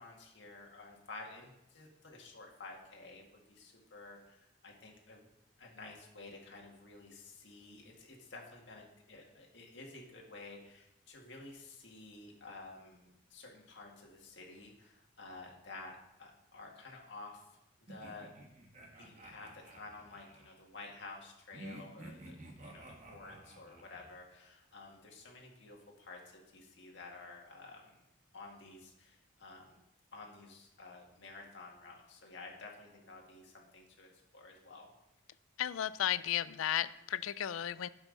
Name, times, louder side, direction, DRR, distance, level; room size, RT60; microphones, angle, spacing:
voice 1, 0.0-5.2 5.6-17.5 17.8-18.3 19.0-22.4 22.6-28.0 28.3-29.8 30.1-34.9, left 3 dB, 60° left, -1 dB, 2.0 m, -52 dB
sound 1, 17.9-20.6 21.5-24.1, right 1 dB, 35° right, 1.2 m, -52 dB
voice 2, 35.6-37.9, left 11 dB, 90° left, 16 dB, 0.4 m, -34 dB
12.0 x 5.6 x 4.0 m, 0.86 s
head